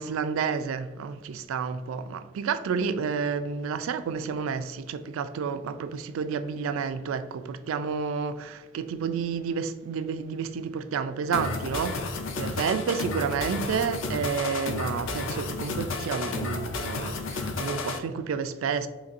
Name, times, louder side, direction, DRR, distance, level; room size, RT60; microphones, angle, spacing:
voice 1, 0.0-12.0 12.4-18.9, right 6 dB, 75° right, 0.3 m, -30 dB
sound 1, 11.3-18.0, left 3 dB, 65° left, 0.4 m, -32 dB
4.0 x 3.2 x 2.5 m
head